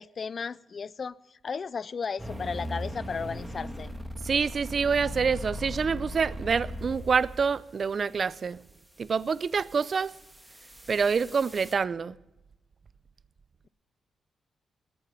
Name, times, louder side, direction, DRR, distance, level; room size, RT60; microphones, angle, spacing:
voice 1, 0.0-3.9, left 5 dB, 45° left, 0.4 m, -35 dB
sound 1, 2.2-7.4 9.1-11.7, equal, 5° right, 1.6 m, -39 dB
voice 2, 4.2-8.6 9.0-10.1 10.9-12.1, right 5 dB, 45° right, 0.5 m, -26 dB
20.5 x 9.0 x 5.6 m
cardioid pair, 90°, 0 cm